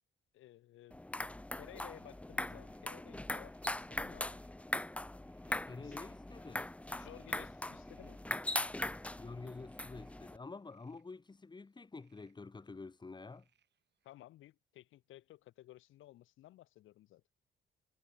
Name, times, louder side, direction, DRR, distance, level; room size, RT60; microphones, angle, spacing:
voice 1, 0.3-1.0 1.5-4.4 5.8-6.0 6.9-8.2 14.0-17.2, left 15 dB, 85° left, 3.3 m, -56 dB
sound 1, 0.9-10.4, left 1 dB, 5° left, 0.7 m, -41 dB
sound 2, 1.4-14.1, right 9 dB, 60° right, 7.7 m, -80 dB
voice 2, 5.4-6.7 9.2-13.5, left 3 dB, 20° left, 1.7 m, -49 dB
cardioid pair, 90°, 20 cm